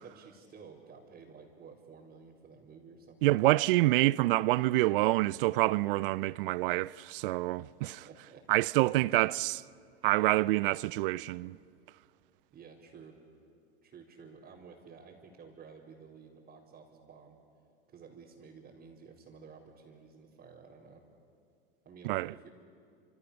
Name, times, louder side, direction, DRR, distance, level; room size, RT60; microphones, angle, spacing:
voice 1, 0.0-3.4 7.6-8.4 12.5-13.2 13.8-17.4 17.9-21.0 21.8-22.5, right 5 dB, 30° right, 4.4 m, -53 dB
voice 2, 3.2-7.6 8.5-9.6 10.0-11.6 22.0-22.3, right 18 dB, 60° right, 0.6 m, -27 dB
30.0 x 27.5 x 7.0 m
hypercardioid pair, 95°, 30 cm